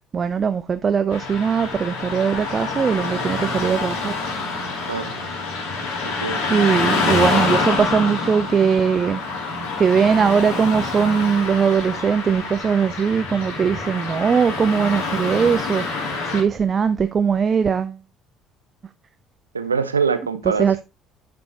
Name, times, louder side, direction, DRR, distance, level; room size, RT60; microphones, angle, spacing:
voice 1, 0.1-4.1 6.5-9.2 9.8-18.0 20.6-20.8, right 6 dB, 35° right, 0.5 m, -20 dB
Car passing by / Traffic noise roadway noise, 1.1-16.4, left 3 dB, 60° left, 3.1 m, -26 dB
voice 2, 6.0-6.4 19.5-20.8, right 5 dB, 80° right, 0.6 m, -24 dB
11.0 x 5.2 x 3.0 m
figure-of-eight pair, 55°, 0 cm